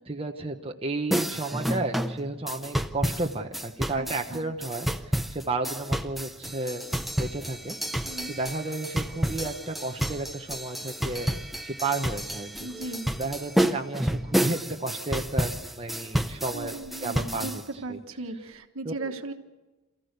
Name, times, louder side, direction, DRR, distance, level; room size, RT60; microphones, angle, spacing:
voice 1, 0.1-6.8 7.2-7.8 8.3-12.7 13.1-16.7 17.0-17.6 17.9-18.0 18.8-19.1, right 2 dB, 25° right, 3 dB, 1.1 m, -32 dB
sound 1, 1.1-17.6, equal, ahead, 0.6 m, -30 dB
voice 2, 8.0-8.3 12.6-13.1 16.5-17.5 17.8-19.3, right 2 dB, 80° right, 6 dB, 1.4 m, -37 dB
28.5 x 15.0 x 6.7 m, 1.2 s
head